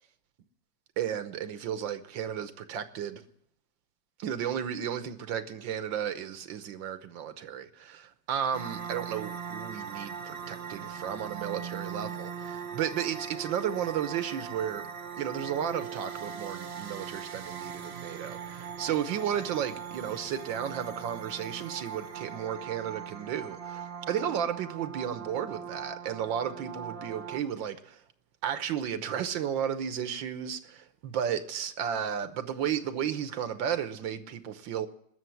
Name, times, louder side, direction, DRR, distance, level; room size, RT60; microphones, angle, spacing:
voice 1, 1.0-3.2 4.2-14.9 15.2-28.0 28.4-34.9, right 9 dB, 80° right, 1.7 m, -33 dB
sound 1, 8.5-27.4, right 7 dB, 40° right, 1.1 m, -40 dB
20.5 x 7.0 x 9.5 m
omnidirectional pair, 2.0 m